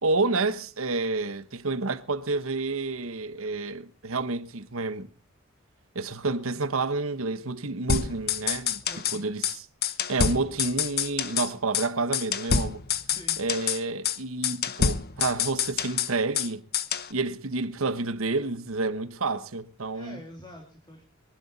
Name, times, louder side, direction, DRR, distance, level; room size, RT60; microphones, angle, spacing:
voice 1, 0.0-5.1 5.9-8.8 9.1-9.6 10.1-12.8 13.4-16.6 17.1-20.2, right 3 dB, 75° right, 1.1 m, -29 dB
sound 1, 7.9-9.2 9.4-9.6 9.8-11.5 11.7-11.9 12.1-13.8 14.0-14.2 14.4-16.5 16.7-17.1, left 7 dB, 50° left, 0.9 m, -27 dB
voice 2, 8.8-9.2 13.0-13.5 19.9-21.0, equal, 20° left, 3.0 m, -46 dB
22.5 x 12.0 x 4.1 m
head